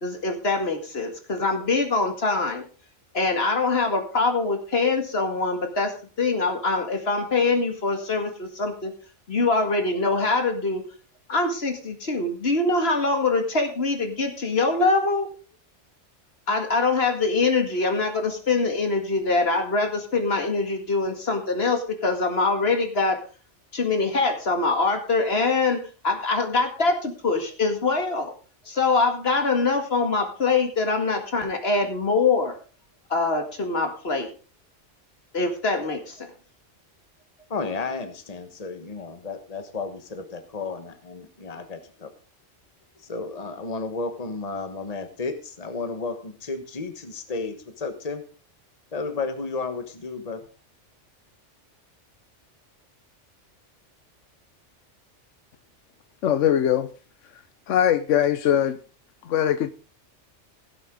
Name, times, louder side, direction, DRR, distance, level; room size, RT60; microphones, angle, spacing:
voice 1, 0.0-2.6 3.1-5.9 6.2-8.9 9.3-10.8 11.3-15.3 16.5-23.2 23.7-25.8 26.0-28.3 28.7-32.6 33.1-34.3 35.3-36.3, left 3 dB, 55° left, 2.2 m, -24 dB
voice 2, 37.5-42.1 43.0-48.2 48.9-50.5, left 4 dB, 35° left, 1.4 m, -33 dB
voice 3, 56.2-56.9 57.7-58.8 59.2-59.7, left 10 dB, 90° left, 1.1 m, -21 dB
17.0 x 7.7 x 3.8 m
omnidirectional pair, 1.2 m